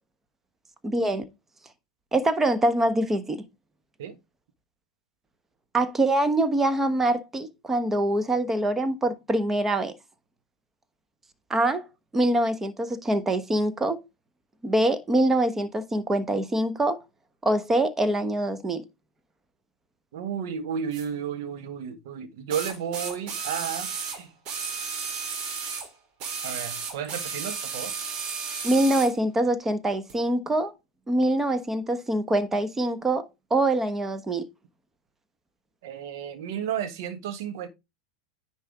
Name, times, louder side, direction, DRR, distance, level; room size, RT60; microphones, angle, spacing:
voice 1, 0.8-1.3 2.1-3.4 5.7-9.9 11.5-11.9 12.1-14.0 14.6-17.0 17.4-18.8 28.6-30.7 31.1-34.4, right 1 dB, 15° right, 1.1 m, -24 dB
voice 2, 20.1-24.3 26.4-27.9 35.8-37.7, right 8 dB, 60° right, 1.5 m, -33 dB
sound 1, 20.9-21.1 22.5-25.9 26.2-29.2 30.1-30.2, right 5 dB, 45° right, 2.3 m, -33 dB
10.0 x 4.3 x 3.6 m
hypercardioid pair, 95°, 2 cm